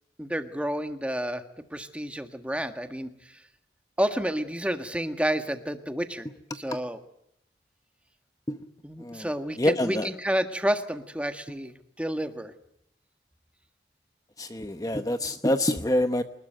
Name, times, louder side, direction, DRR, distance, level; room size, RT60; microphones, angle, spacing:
voice 1, 0.2-1.4 1.7-3.4 4.0-6.3 6.5-7.0 8.8-12.5, equal, 5° right, 7 dB, 1.6 m, -30 dB
voice 2, 9.6-10.1 14.4-16.2, left 1 dB, 20° left, 8 dB, 1.0 m, -26 dB
25.5 x 20.5 x 7.9 m, 0.73 s
head